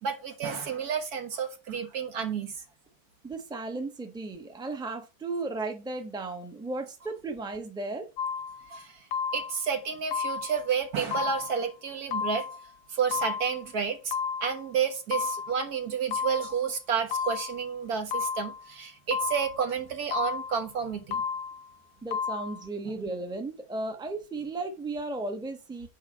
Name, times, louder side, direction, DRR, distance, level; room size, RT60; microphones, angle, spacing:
voice 1, 0.0-2.5 8.7-9.0 9.3-12.5 12.9-14.1 14.4-21.2 22.9-23.0, right 6 dB, 75° right, 1.8 m, -30 dB
voice 2, 3.2-8.1 22.0-25.9, right 3 dB, 5° right, 0.9 m, -35 dB
sound 1, 8.2-8.7 9.1-9.7 10.1-10.7 11.1-11.7 12.1-12.7 13.1-13.7 14.1-14.7 15.1-15.7 16.1-16.7 17.1-17.7 18.1-18.7 19.1-19.7 20.1-20.7 21.1-21.7 22.1-22.7, left 6 dB, 70° left, 1.0 m, -32 dB
10.0 x 3.6 x 5.9 m
omnidirectional pair, 1.6 m